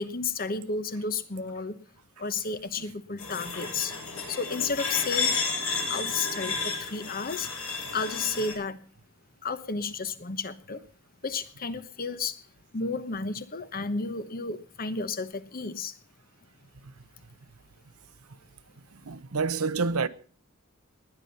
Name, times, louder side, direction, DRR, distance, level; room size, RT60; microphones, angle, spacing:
voice 1, 0.0-1.8 2.2-3.9 4.3-5.4 5.9-7.5 7.9-8.8 9.4-10.8 11.2-12.4 12.7-15.9, left 4 dB, 40° left, 1.0 m, -32 dB
sound 1, 3.2-8.5, left 4 dB, 80° left, 6.6 m, -32 dB
voice 2, 19.0-20.1, right 4 dB, 80° right, 0.9 m, -28 dB
20.0 x 10.5 x 5.5 m
head